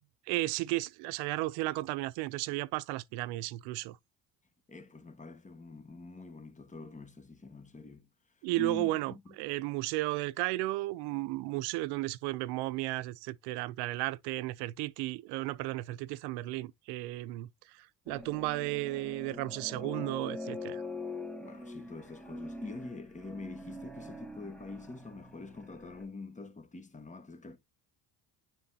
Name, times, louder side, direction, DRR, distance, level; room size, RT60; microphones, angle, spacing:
voice 1, 0.3-4.0 8.4-17.5 18.1-20.8, right 18 dB, 85° right, 0.6 m, -34 dB
voice 2, 4.7-8.1 8.6-9.3 19.7-20.2 21.4-27.6, left 3 dB, 20° left, 1.3 m, -45 dB
sound 1, 18.1-26.0, left 2 dB, 5° left, 1.3 m, -44 dB
9.6 x 3.8 x 2.7 m
cardioid pair, 100°, 39 cm